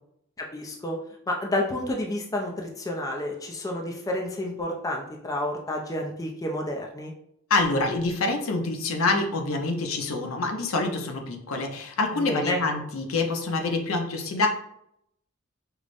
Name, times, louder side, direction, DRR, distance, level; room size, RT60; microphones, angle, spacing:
voice 1, 0.4-1.0 1.3-7.1 12.2-12.6, left 1 dB, 15° left, 1 dB, 0.4 m, -30 dB
voice 2, 7.5-14.5, left 3 dB, 75° left, 4 dB, 0.6 m, -26 dB
4.7 x 2.0 x 2.5 m, 0.74 s
head